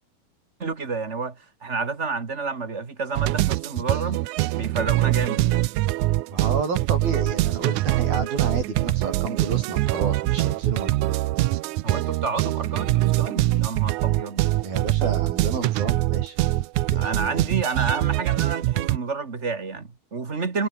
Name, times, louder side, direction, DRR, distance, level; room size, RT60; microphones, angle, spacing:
voice 1, 0.6-4.2 4.5-5.6 11.8-14.5 16.9-20.7, right 4 dB, 30° right, 1.3 m, -30 dB
sound 1, 3.2-19.0, right 17 dB, 90° right, 1.7 m, -23 dB
voice 2, 6.3-11.1 14.6-16.4 16.9-17.5, right 4 dB, 75° right, 9.5 m, -30 dB
omnidirectional pair, 4.3 m